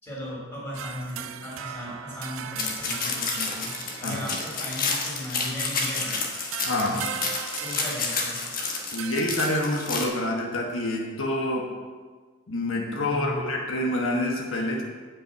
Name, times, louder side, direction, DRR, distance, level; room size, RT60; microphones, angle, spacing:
voice 1, 0.0-6.2 6.8-7.1 7.6-8.4 13.0-13.4, left 1 dB, 10° left, -6 dB, 3.4 m, -37 dB
sound 1, 0.7-5.3 6.0-9.7, right 9 dB, 75° right, 0.4 m, -39 dB
sound 2, 2.6-10.1, left 4 dB, 40° left, 1.4 m, -30 dB
voice 2, 6.6-7.0 8.9-11.7 12.5-14.8, left 1 dB, 75° left, -1 dB, 1.3 m, -27 dB
7.9 x 6.2 x 7.7 m, 1.5 s
head